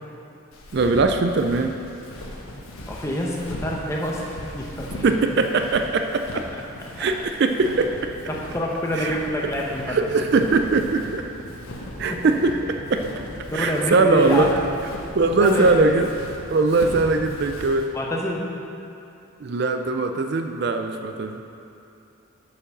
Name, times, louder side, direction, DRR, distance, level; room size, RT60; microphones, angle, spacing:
Walk footsteps, 0.5-17.9, left 1 dB, 85° left, 1.2 m, -37 dB
voice 1, 0.7-1.7 5.0-6.2 7.0-8.2 9.0-9.2 9.9-11.3 12.0-13.1 13.5-14.5 15.1-16.1 16.5-17.9 19.4-21.4, right 3 dB, 50° right, 6 dB, 0.4 m, -21 dB
voice 2, 2.9-5.0 7.0-7.1 8.3-10.0 12.1-12.2 13.5-14.6 15.4-15.9 17.9-18.5, equal, 15° left, -2 dB, 0.9 m, -27 dB
8.5 x 5.0 x 6.5 m, 2.7 s
head